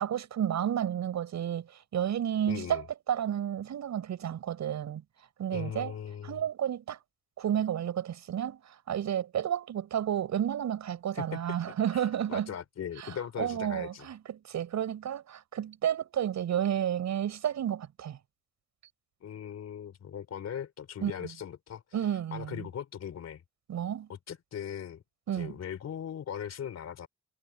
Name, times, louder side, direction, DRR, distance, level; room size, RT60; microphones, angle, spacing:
voice 1, 0.0-5.0 5.4-5.9 6.2-7.0 7.4-12.5 13.0-18.2 21.0-21.3 21.9-22.7 23.7-24.1 25.3-25.6, right 10 dB, 65° right, 7.3 m, -31 dB
voice 2, 2.5-2.9 5.5-6.4 11.1-14.1 19.2-21.8 22.3-23.4 24.1-25.0 25.3-27.1, left 9 dB, 60° left, 3.6 m, -39 dB
cardioid pair, 90°, 30 cm